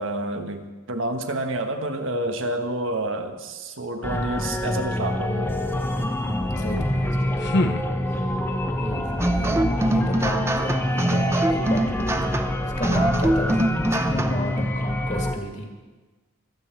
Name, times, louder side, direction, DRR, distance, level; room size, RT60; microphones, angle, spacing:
voice 1, 0.0-5.5, right 1 dB, 75° right, 6 dB, 1.5 m, -29 dB
sound 1, 4.0-15.4, left 1 dB, 10° left, 1.0 m, -26 dB
voice 2, 6.2-7.7 8.1-8.4 8.8-13.6 14.0-15.7, left 1 dB, 35° left, 2 dB, 2.0 m, -32 dB
sound 2, 6.9-8.6, left 1 dB, 55° left, 0.9 m, -28 dB
sound 3, 9.2-14.5, right 1 dB, 15° right, 0.6 m, -24 dB
24.5 x 9.0 x 4.6 m, 1.3 s
head